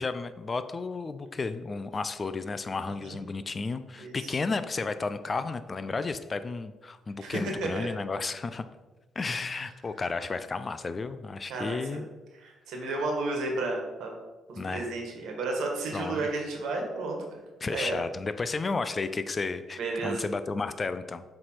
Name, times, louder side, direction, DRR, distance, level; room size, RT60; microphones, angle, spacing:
voice 1, 0.0-8.6 9.2-12.1 14.6-14.9 15.9-16.3 17.6-21.2, left 4 dB, 35° left, 12 dB, 0.4 m, -33 dB
voice 2, 2.9-3.2 4.0-4.3 7.2-7.9 11.5-12.0 12.3-14.1 14.5-17.2 17.7-17.9 19.8-20.2, right 2 dB, 80° right, 1 dB, 1.5 m, -32 dB
7.2 x 3.3 x 4.5 m, 1.2 s
cardioid pair, 90°, 0 cm